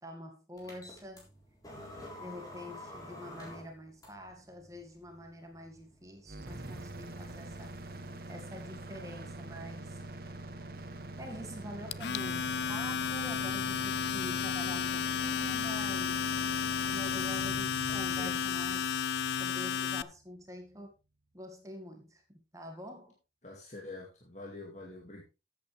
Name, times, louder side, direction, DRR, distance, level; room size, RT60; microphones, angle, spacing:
voice 1, 0.0-1.3 2.1-7.8 8.3-10.0 11.2-16.5 16.8-19.0 19.3-20.9 21.3-23.2, equal, 20° right, 1.9 m, -46 dB
sound 1, 0.6-19.8, left 1 dB, 20° left, 3.9 m, -54 dB
sound 2, 6.3-20.2, right 2 dB, 55° right, 1.5 m, -45 dB
Domestic sounds home sounds, 11.9-20.0, left 7 dB, 70° left, 0.5 m, -32 dB
voice 2, 17.9-18.4 23.4-25.2, left 2 dB, 40° left, 2.2 m, -46 dB
13.5 x 8.6 x 3.3 m
head